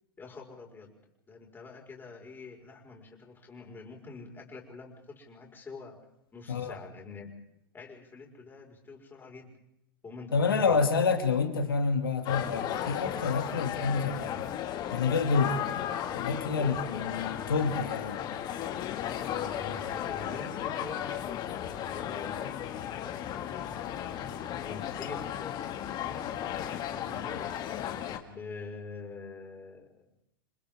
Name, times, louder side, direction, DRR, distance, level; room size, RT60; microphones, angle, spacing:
voice 1, 0.2-0.9 1.3-6.0 6.3-7.4 7.7-9.5 10.0-10.7 16.5-17.1 19.2-23.4 24.5-25.6 26.0-27.5 28.2-30.0, left 4 dB, 15° left, 0 dB, 5.3 m, -45 dB
voice 2, 6.5-6.8 10.3-14.4 14.9-15.6 16.1-18.2, left 5 dB, 80° left, 5 dB, 2.7 m, -28 dB
sound 1, 12.2-28.2, left 10 dB, 35° left, 2.2 m, -35 dB
29.5 x 26.0 x 3.7 m, 0.82 s
figure-of-eight pair, 95°, 12 cm